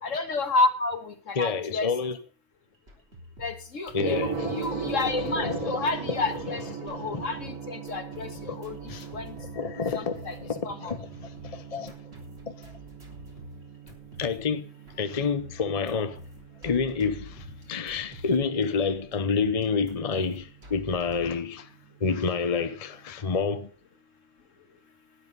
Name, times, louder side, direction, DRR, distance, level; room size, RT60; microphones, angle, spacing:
voice 1, 0.0-1.9 3.4-4.2 4.5-8.8 9.1-9.4 9.9-10.3 10.7-10.8, left 3 dB, 70° left, 2.0 m, -30 dB
voice 2, 1.3-2.2 3.9-7.3 8.5-8.6 8.9-9.1 9.4-11.9 12.5-12.7 14.2-14.7 15.0-16.2 16.6-21.7 22.0-23.7, left 5 dB, 30° left, 0.9 m, -29 dB
sound 1, 2.7-21.3, equal, 50° right, 3.7 m, -48 dB
Gong, 3.9-23.0, right 6 dB, 85° right, 1.8 m, -40 dB
12.5 x 10.5 x 5.4 m
omnidirectional pair, 1.4 m